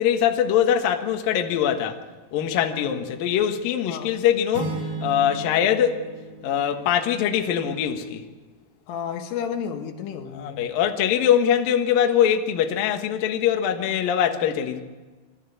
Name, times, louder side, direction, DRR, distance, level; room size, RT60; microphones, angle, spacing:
voice 1, 0.0-2.0 2.3-6.1 6.4-8.2 10.3-14.8, left 9 dB, 65° left, 2.5 m, -22 dB
voice 2, 2.8-3.2 3.9-4.2 8.9-10.7, left 7 dB, 85° left, 4.2 m, -32 dB
sound 1, 4.5-7.3, right 3 dB, 70° right, 6.1 m, -34 dB
23.0 x 13.5 x 9.3 m
omnidirectional pair, 5.6 m